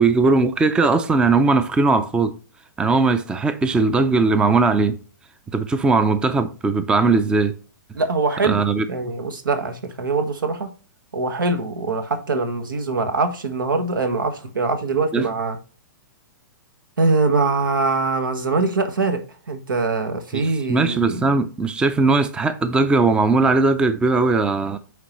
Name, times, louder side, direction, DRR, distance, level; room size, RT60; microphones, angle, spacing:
voice 1, 0.0-2.4 2.8-5.0 5.5-7.6 8.4-8.9 15.1-15.3 20.3-24.8, right 3 dB, 10° right, 0.4 m, -19 dB
voice 2, 7.9-10.7 11.1-15.6 17.0-19.2 19.5-21.3, right 3 dB, 90° right, 1.4 m, -23 dB
9.3 x 3.8 x 3.0 m
hypercardioid pair, 135°, 11 cm